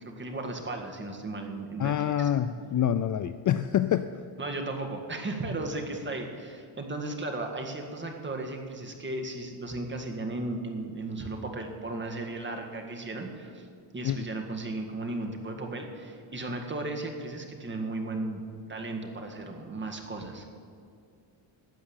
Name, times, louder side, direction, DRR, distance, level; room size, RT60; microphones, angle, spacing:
voice 1, 0.2-2.3 4.4-13.7 13.9-18.4 18.7-20.5, right 2 dB, 20° right, 3 dB, 1.9 m, -35 dB
voice 2, 1.8-4.1 14.0-14.2, left 10 dB, 40° left, 12 dB, 0.4 m, -26 dB
13.0 x 8.4 x 8.7 m, 2.3 s
cardioid pair, 115°, 49 cm